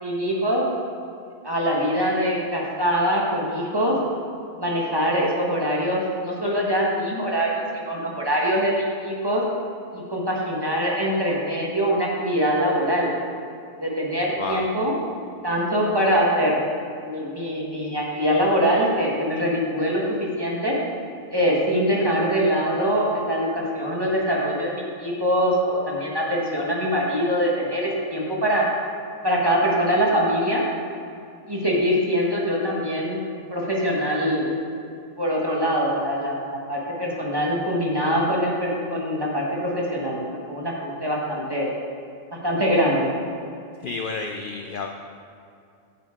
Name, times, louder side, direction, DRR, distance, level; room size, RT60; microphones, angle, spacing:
voice 1, 0.0-0.6 1.4-4.0 4.6-9.4 9.9-13.1 13.8-14.9 15.4-16.6 17.0-20.8 21.3-28.6 29.2-30.6 31.5-33.2 33.5-34.5 35.2-36.4 36.7-41.7 42.4-43.1, equal, 20° right, -3 dB, 1.4 m, -23 dB
voice 2, 43.8-44.9, left 4 dB, 60° left, 3 dB, 0.5 m, -30 dB
9.4 x 7.9 x 3.7 m, 2.5 s
omnidirectional pair, 1.4 m